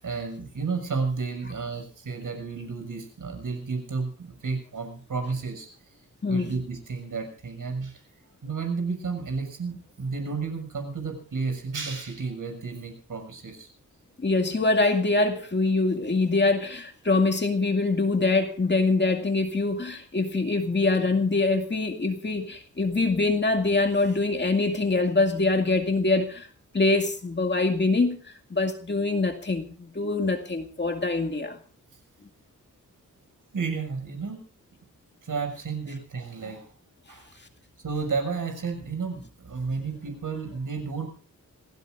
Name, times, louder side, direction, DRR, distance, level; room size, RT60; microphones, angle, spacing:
voice 1, 0.0-5.7 6.3-8.0 8.4-13.7 33.5-34.4 35.2-36.7 37.1-37.3 37.8-41.1, right 4 dB, 70° right, 6.9 m, -32 dB
voice 2, 14.2-26.5 26.7-28.2 28.5-31.6, left 3 dB, 35° left, 2.2 m, -24 dB
27.0 x 16.5 x 2.6 m
wide cardioid pair, 150°, 32 cm